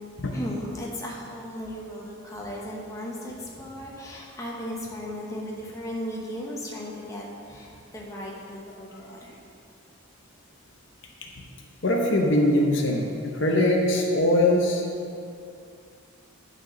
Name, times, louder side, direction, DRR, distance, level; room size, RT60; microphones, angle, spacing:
voice 1, 0.3-9.4, equal, 15° left, -3 dB, 1.0 m, -36 dB
voice 2, 11.8-14.8, left 1 dB, 60° left, 1 dB, 0.9 m, -22 dB
9.4 x 4.5 x 6.3 m, 2.5 s
head